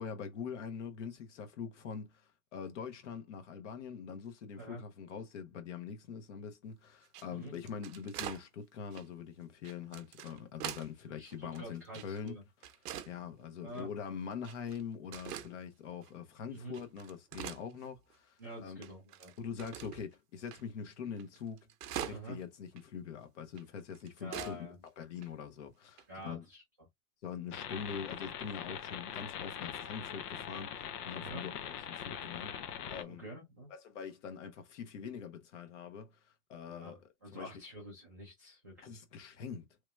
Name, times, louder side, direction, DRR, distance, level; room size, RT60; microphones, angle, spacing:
voice 1, 0.0-12.4 13.1-18.8 19.4-21.6 22.0-26.4 27.2-32.6 32.9-33.2 33.7-36.2 36.5-37.6 38.8-39.7, left 6 dB, 50° left, 1.1 m, -43 dB
sound 1, 7.0-8.4 8.9-9.1 9.6-10.9 11.3-12.3 12.6-13.1 13.7-13.8 14.4-14.8 15.1-15.5 16.0-16.1 16.6-18.2 18.4-18.5 18.8-20.1 20.5-20.6 20.9-21.0 21.2-22.4 22.8-22.9 23.6-24.6 24.9-25.0 25.2-25.3 26.0-26.2, right 10 dB, 80° right, 0.7 m, -44 dB
voice 2, 11.2-12.4 13.6-13.9 16.5-16.7 18.4-19.3 22.1-22.4 24.2-24.8 26.1-26.6 31.2-31.4 33.1-33.7 36.7-39.0, right 1 dB, 15° right, 0.4 m, -47 dB
sound 2, 27.5-33.0, left 9 dB, 80° left, 0.8 m, -42 dB
3.2 x 2.9 x 2.3 m
supercardioid pair, 165°, 46 cm